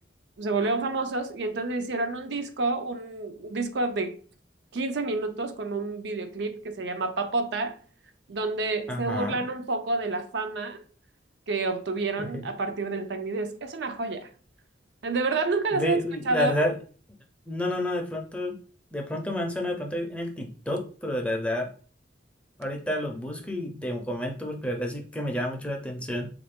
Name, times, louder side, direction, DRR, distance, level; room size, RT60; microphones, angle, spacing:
voice 1, 0.4-4.1 4.7-7.8 8.3-10.8 11.5-14.3 15.0-16.0 16.3-16.6, right 3 dB, 70° right, 0.5 m, -29 dB
voice 2, 8.9-9.4 12.2-12.4 15.7-16.8 17.5-18.6 18.9-21.7 22.6-26.3, left 1 dB, 5° left, 0.5 m, -30 dB
3.5 x 2.5 x 3.5 m
head